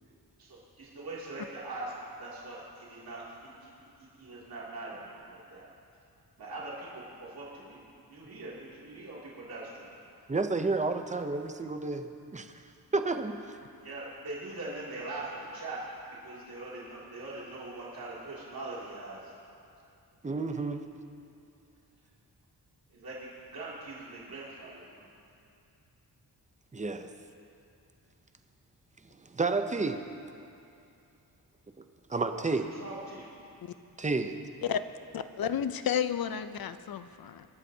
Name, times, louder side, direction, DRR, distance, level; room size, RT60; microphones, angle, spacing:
voice 1, 0.4-3.7 4.0-5.7 6.4-9.9 13.8-19.3 22.9-25.1 32.3-33.3, right 2 dB, 65° right, -7 dB, 2.6 m, -42 dB
voice 2, 10.3-12.5 12.9-13.6 20.2-20.8 26.7-27.1 29.2-30.1 32.1-32.7 34.0-34.4, right 3 dB, 20° right, 7 dB, 0.5 m, -31 dB
voice 3, 35.1-37.5, left 8 dB, 65° left, 12 dB, 0.6 m, -32 dB
22.5 x 12.5 x 2.8 m, 2.6 s
wide cardioid pair, 165°, 39 cm